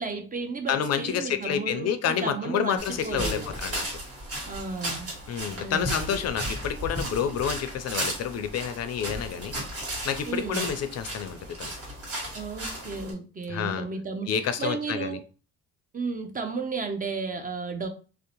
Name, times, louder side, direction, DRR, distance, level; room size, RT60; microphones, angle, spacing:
voice 1, 0.0-3.5 4.4-5.1 5.6-6.2 10.3-10.7 12.3-15.2 15.9-17.9, right 4 dB, 30° right, 6 dB, 0.5 m, -33 dB
voice 2, 0.7-4.0 5.3-9.6 10.0-11.7 13.5-13.9 14.3-15.2, left 8 dB, 55° left, 10 dB, 0.4 m, -29 dB
sound 1, 2.8-13.1, right 1 dB, 50° right, 1.5 m, -35 dB
2.6 x 2.0 x 2.8 m, 0.36 s
cardioid pair, 90°, 30 cm